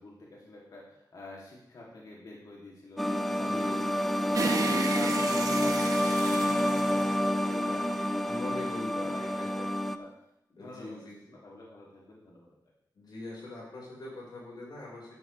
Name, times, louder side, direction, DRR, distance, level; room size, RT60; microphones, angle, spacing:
voice 1, 0.0-4.4 4.9-7.1 7.4-8.6 9.0-9.2 9.8-10.1 10.5-11.0 11.4-12.5, left 2 dB, 60° left, -4 dB, 2.8 m, -47 dB
sound 1, 3.0-10.0, left 1 dB, ahead, 0.6 m, -28 dB
voice 2, 3.3-3.7 8.2-9.7 10.6-11.3 12.9-15.1, left 2 dB, 80° left, -4 dB, 5.0 m, -42 dB
sound 2, 4.3-7.8, right 3 dB, 55° right, 1.3 m, -33 dB
13.0 x 11.5 x 3.4 m, 0.79 s
wide cardioid pair, 150°, 7 cm